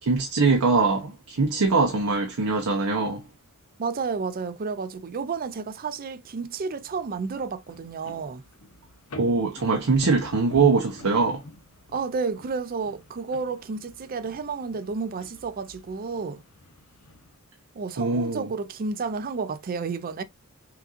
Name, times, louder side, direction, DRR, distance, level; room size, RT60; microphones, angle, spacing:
voice 1, 0.0-3.2 9.2-11.4 18.0-18.5, right 4 dB, 85° right, 0.7 m, -22 dB
voice 2, 3.8-8.4 11.9-16.4 17.7-20.2, right 4 dB, 40° right, 0.4 m, -31 dB
sound 1, 6.8-17.4, left 2 dB, 85° left, 0.8 m, -46 dB
5.8 x 2.5 x 2.4 m
head